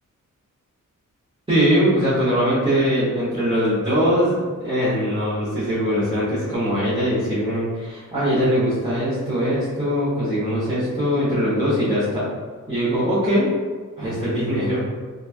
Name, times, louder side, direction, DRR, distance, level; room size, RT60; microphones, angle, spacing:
voice 1, 1.5-12.3 12.7-13.5 14.0-14.8, equal, 15° right, -13 dB, 1.0 m, -21 dB
3.0 x 2.3 x 2.4 m, 1.5 s
wide cardioid pair, 100°, 33 cm